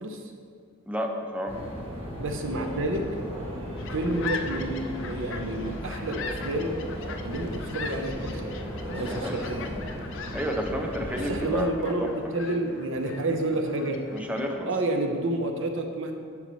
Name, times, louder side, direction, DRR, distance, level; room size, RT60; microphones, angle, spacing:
voice 1, 0.9-1.5 9.1-9.7 10.3-12.1 14.1-14.7, equal, 5° right, 2 dB, 0.5 m, -31 dB
sound 1, 1.5-11.6, equal, 25° right, 1.3 m, -36 dB
voice 2, 2.2-3.1 3.9-6.8 7.2-8.5 8.9-9.7 11.1-14.0 14.7-16.1, right 1 dB, 60° right, 4 dB, 0.7 m, -29 dB
sound 2, 3.8-14.6, left 5 dB, 60° left, 0.5 m, -40 dB
11.0 x 5.5 x 3.1 m, 2.2 s
head